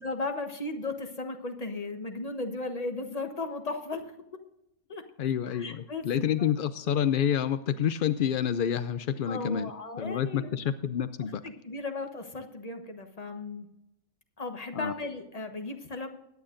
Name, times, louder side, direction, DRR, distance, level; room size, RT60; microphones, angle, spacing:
voice 1, 0.0-4.1 4.9-5.0 5.5-6.1 9.3-10.5 11.4-13.7 14.4-16.1, left 3 dB, 30° left, 6 dB, 1.2 m, -36 dB
voice 2, 5.2-9.7 10.0-11.4 14.7-14.9, left 9 dB, 70° left, 13 dB, 0.5 m, -28 dB
21.5 x 9.4 x 2.6 m, 0.88 s
omnidirectional pair, 1.5 m